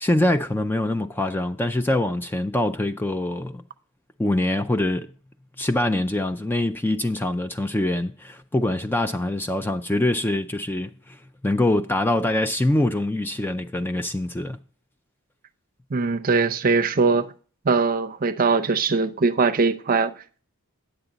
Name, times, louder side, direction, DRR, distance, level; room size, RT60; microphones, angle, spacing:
voice 1, 0.0-3.6 4.2-5.1 5.6-14.6, left 1 dB, 10° left, 0.3 m, -24 dB
voice 2, 15.9-17.3 17.6-20.1, right 4 dB, 40° right, 0.6 m, -21 dB
10.0 x 7.8 x 3.9 m
head